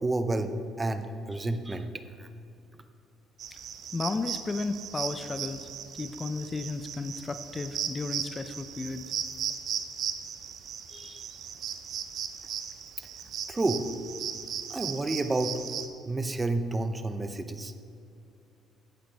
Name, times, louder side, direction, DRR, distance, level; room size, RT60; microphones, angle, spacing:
voice 1, 0.0-1.9 2.2-2.3 13.5-13.9 14.7-15.5 16.1-17.7, right 2 dB, 20° right, 9 dB, 0.7 m, -30 dB
sound 1, 3.4-15.9, right 8 dB, 60° right, 0.7 m, -37 dB
voice 2, 3.9-5.7 6.0-9.0 10.9-11.2, left 3 dB, 25° left, 10 dB, 0.5 m, -34 dB
11.5 x 8.9 x 3.4 m, 2.6 s
supercardioid pair, 80°, 0 cm